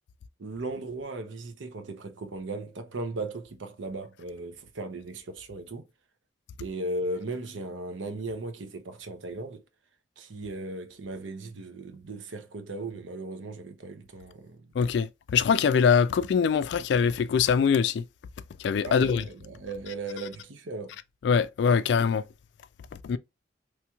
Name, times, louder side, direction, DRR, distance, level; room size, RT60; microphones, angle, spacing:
voice 1, 0.4-5.8 6.6-9.6 10.2-14.7 18.8-21.0, right 2 dB, 85° right, 0.7 m, -37 dB
voice 2, 14.8-18.0 18.6-19.2 21.2-22.2 23.0-23.2, left 6 dB, 65° left, 0.3 m, -23 dB
3.1 x 3.0 x 2.3 m
head